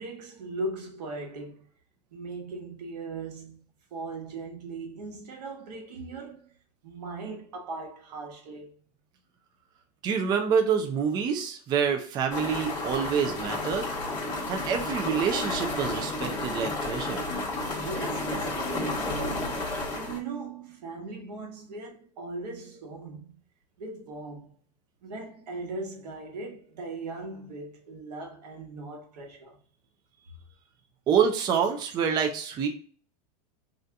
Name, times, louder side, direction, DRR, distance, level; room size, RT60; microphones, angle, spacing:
voice 1, 0.0-1.6 2.1-3.6 3.9-6.5 6.8-8.7 17.7-23.3 23.8-24.5 25.0-29.6, right 3 dB, 85° right, 1.1 m, -39 dB
voice 2, 10.0-13.9 14.5-17.2 31.1-32.7, right 7 dB, 20° right, 0.3 m, -27 dB
sound 1, 12.3-20.2, left 2 dB, 20° left, 1.0 m, -32 dB
2.7 x 2.4 x 3.3 m
supercardioid pair, 145°, 20 cm